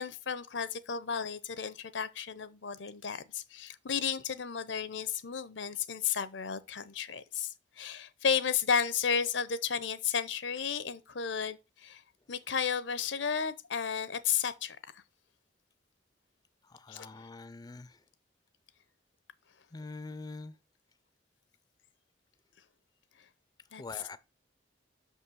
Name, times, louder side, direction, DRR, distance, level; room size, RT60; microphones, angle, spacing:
voice 1, 0.0-12.0 12.3-14.8 16.9-17.1 23.7-24.0, left 7 dB, 85° left, 0.7 m, -33 dB
voice 2, 16.7-17.9 19.7-20.5 23.8-24.2, left 3 dB, 20° left, 0.4 m, -44 dB
6.4 x 5.5 x 6.2 m
head